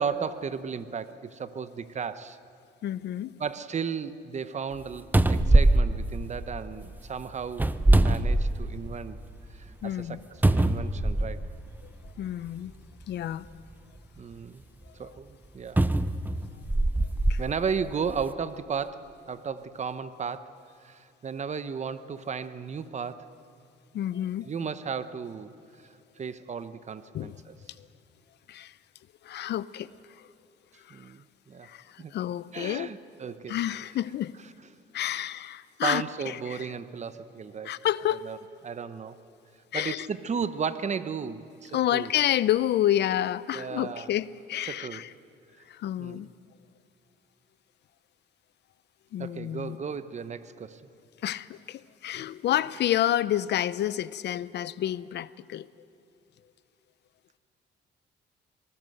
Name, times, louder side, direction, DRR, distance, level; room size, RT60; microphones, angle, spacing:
voice 1, 0.0-2.4 3.4-9.2 9.5-11.4 14.2-14.6 15.0-15.8 17.4-20.5 20.8-23.3 24.4-25.5 25.8-25.9 26.2-27.5 30.9-31.7 32.0-32.1 32.5-33.6 35.8-37.8 38.3-38.4 38.6-39.2 39.7-42.1 43.5-44.1 44.7-45.0 46.0-46.3 49.2-50.8, right 6 dB, 40° right, 13 dB, 1.0 m, -34 dB
voice 2, 2.8-3.3 9.8-10.2 12.2-12.7 13.1-13.5 14.9-15.1 17.3-17.4 23.9-24.5 27.1-27.4 27.8-27.9 28.5-28.8 29.2-30.3 30.8-31.1 31.6-32.9 33.5-34.4 34.9-36.7 37.6-38.3 39.7-40.1 41.7-45.1 45.7-46.3 49.1-49.8 51.2-55.7, left 12 dB, 65° left, 18 dB, 0.7 m, -29 dB
sound 1, 4.7-4.8 5.1-6.8 7.5-8.9 9.4-9.5 10.4-11.5 12.5-12.6 15.8-17.4 18.1-18.2, right 2 dB, 10° right, 0.8 m, -22 dB
25.0 x 19.0 x 7.9 m, 2.7 s
cardioid pair, 110°, 19 cm